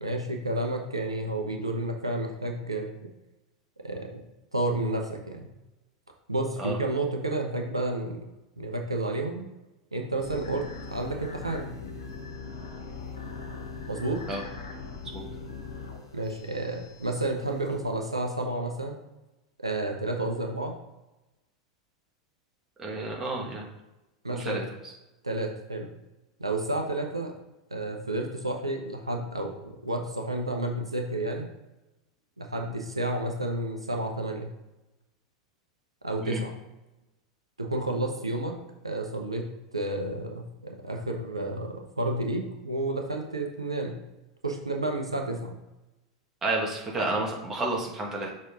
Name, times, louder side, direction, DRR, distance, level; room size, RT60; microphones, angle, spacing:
voice 1, 0.0-2.9 3.8-4.2 4.5-5.5 6.3-8.2 8.6-9.5 9.9-10.6 10.9-11.7 13.8-14.2 16.1-19.0 19.6-20.7 24.2-24.6 25.2-25.9 26.4-27.3 27.7-31.5 32.4-34.5 36.0-36.5 37.6-38.6 38.8-39.5 39.7-44.0 44.4-45.6, right 2 dB, 90° right, 2 dB, 0.8 m, -31 dB
sound 1, 10.2-17.8, left 4 dB, 70° left, 1.3 m, -41 dB
voice 2, 22.8-23.7 24.3-24.9 36.2-36.4 46.4-48.3, right 2 dB, 20° right, -2 dB, 1.8 m, -31 dB
6.4 x 4.2 x 3.7 m, 1.0 s
figure-of-eight pair, 90°, 3 cm